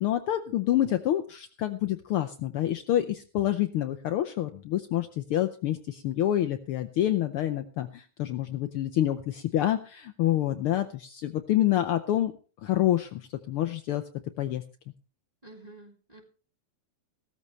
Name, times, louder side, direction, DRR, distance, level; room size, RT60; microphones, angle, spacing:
voice 1, 0.0-12.3 12.6-14.0 14.4-14.6, left 12 dB, 80° left, 8 dB, 1.2 m, -27 dB
voice 2, 15.4-16.2, right 2 dB, 10° right, 0 dB, 3.2 m, -49 dB
16.5 x 13.5 x 3.2 m, 0.37 s
omnidirectional pair, 3.4 m